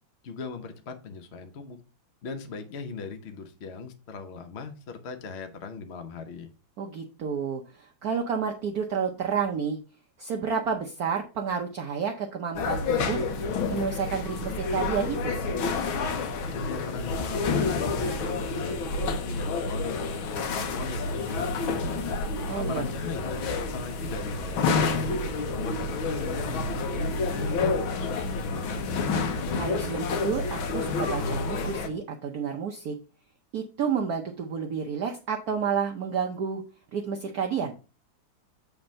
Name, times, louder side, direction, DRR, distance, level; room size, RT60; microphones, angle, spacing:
voice 1, 0.2-1.8 2.2-6.5 16.5-20.0 20.5-21.9 22.3-25.1 25.5-29.0, left 5 dB, 55° left, 7 dB, 0.7 m, -39 dB
voice 2, 6.8-9.8 10.2-13.2 13.7-15.3 22.5-22.9 29.5-32.9 33.5-36.6 36.9-37.7, right 6 dB, 60° right, 3 dB, 1.1 m, -30 dB
sound 1, 12.5-31.9, left 4 dB, 85° left, 1.8 m, -29 dB
7.8 x 3.5 x 5.1 m, 0.34 s
omnidirectional pair, 2.2 m